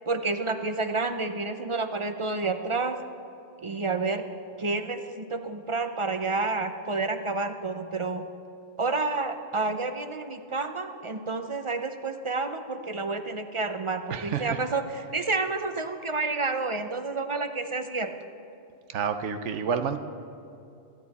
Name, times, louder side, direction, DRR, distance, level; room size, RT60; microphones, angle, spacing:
voice 1, 0.1-3.0 3.6-4.2 4.6-8.2 8.8-14.8 15.1-18.1, right 3 dB, 35° right, 8 dB, 0.5 m, -29 dB
voice 2, 14.1-14.6 18.9-20.0, right 7 dB, 85° right, 9 dB, 1.0 m, -29 dB
24.0 x 9.6 x 4.2 m, 2.6 s
omnidirectional pair, 1.2 m